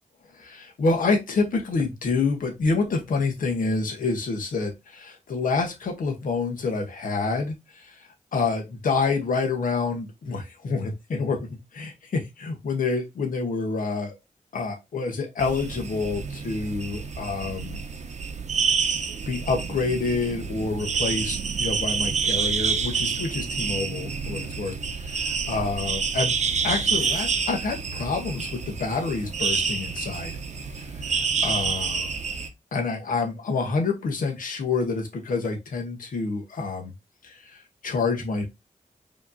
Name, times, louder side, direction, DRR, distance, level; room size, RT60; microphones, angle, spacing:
voice 1, 0.4-11.4 11.7-14.2 14.5-17.8 19.3-26.3 26.6-30.3 31.0-32.1 32.7-36.9 37.2-38.4, left 4 dB, 80° left, 1.1 m, -28 dB
sound 1, 15.4-32.5, right 5 dB, 55° right, 0.7 m, -28 dB
5.0 x 2.9 x 2.6 m
wide cardioid pair, 90°, 14 cm